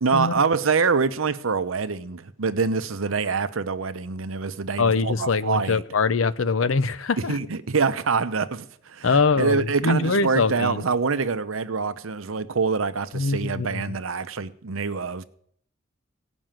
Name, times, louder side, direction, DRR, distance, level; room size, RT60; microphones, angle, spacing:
voice 1, 0.0-5.8 7.3-15.2, right 4 dB, 85° right, 0.8 m, -25 dB
voice 2, 4.8-7.4 9.0-10.8 13.1-13.9, left 4 dB, 75° left, 0.7 m, -23 dB
17.0 x 6.2 x 9.0 m
head